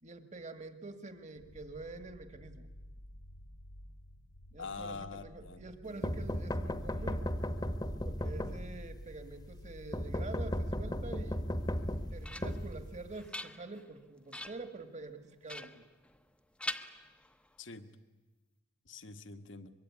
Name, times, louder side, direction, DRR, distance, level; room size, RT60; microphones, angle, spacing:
voice 1, 0.0-2.7 4.5-7.3 8.0-11.5 12.1-15.9, right 3 dB, 40° right, 9 dB, 2.0 m, -46 dB
sound 1, 1.3-11.5, equal, 40° left, 0.8 m, -52 dB
voice 2, 4.6-5.7 17.6-17.9 18.9-19.7, left 4 dB, 70° left, 9 dB, 1.5 m, -44 dB
sound 2, 6.0-9.0 9.9-13.3, equal, 20° left, 1.2 m, -36 dB
sound 3, 11.8-12.7 13.1-13.9 14.3-14.7 15.5-16.3 16.6-17.6, left 1 dB, 5° left, 0.9 m, -44 dB
25.0 x 22.5 x 9.8 m, 1.2 s
head